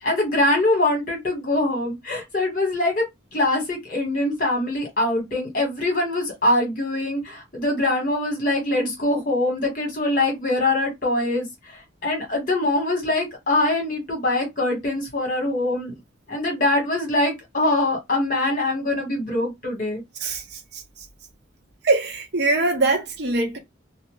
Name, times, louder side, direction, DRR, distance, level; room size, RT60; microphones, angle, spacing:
voice 1, 0.0-3.0 3.3-15.9 16.3-20.0, left 2 dB, 40° left, 1.2 m, -23 dB
voice 2, 20.2-21.1 21.8-23.6, right 3 dB, 55° right, 0.8 m, -23 dB
2.4 x 2.1 x 3.0 m
head